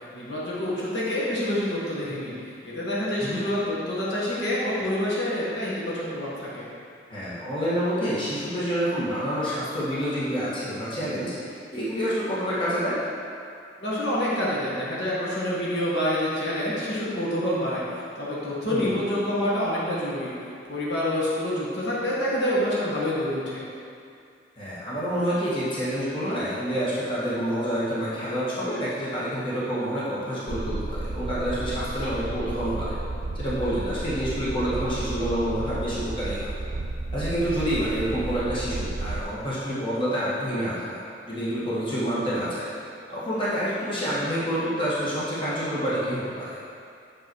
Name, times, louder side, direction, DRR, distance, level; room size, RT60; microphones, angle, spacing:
voice 1, 0.1-2.3 2.6-6.7 13.8-17.8 18.2-20.3 20.7-23.6, left 1 dB, 65° left, -8 dB, 1.7 m, -27 dB
voice 2, 7.1-13.0 18.7-19.0 24.6-32.9 33.3-36.5 37.1-42.7 43.1-46.6, equal, 30° left, -10 dB, 1.6 m, -28 dB
sound 1, 30.5-39.2, right 2 dB, 50° right, 0.4 m, -32 dB
6.6 x 5.6 x 4.7 m, 2.4 s
head